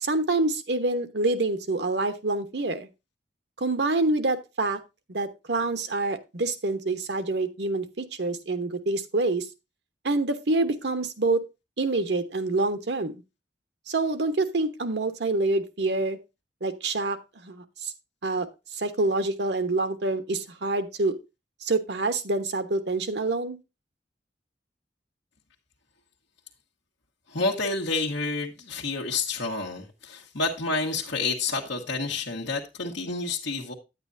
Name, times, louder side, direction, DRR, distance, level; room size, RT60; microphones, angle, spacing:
voice 1, 0.0-2.9 3.6-4.8 5.1-9.5 10.0-11.4 11.8-13.2 13.9-16.2 16.6-17.2 17.4-17.9 18.2-18.5 18.7-21.2 21.6-23.6, right 2 dB, 70° right, 1.1 m, -26 dB
voice 2, 27.3-33.7, left 3 dB, 85° left, 1.3 m, -29 dB
9.6 x 8.9 x 2.6 m
head